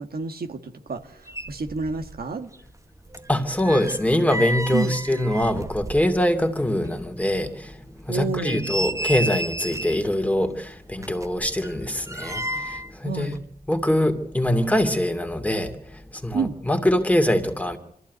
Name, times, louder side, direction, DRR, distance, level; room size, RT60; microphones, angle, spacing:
voice 1, 0.0-2.5 4.7-5.0 8.1-8.7 13.0-13.4 16.3-16.6, right 4 dB, 80° right, 5 dB, 1.8 m, -29 dB
sound 1, 1.0-1.1 1.3-2.3 2.5-6.5 6.8-6.9 7.5-7.6 8.1-10.1 10.9-12.9 13.2-13.4, right 1 dB, 20° right, 1.1 m, -32 dB
voice 2, 3.3-13.3 13.7-17.8, left 1 dB, 10° left, 6 dB, 2.6 m, -23 dB
25.0 x 14.5 x 9.4 m, 0.70 s
wide cardioid pair, 85°, 16 cm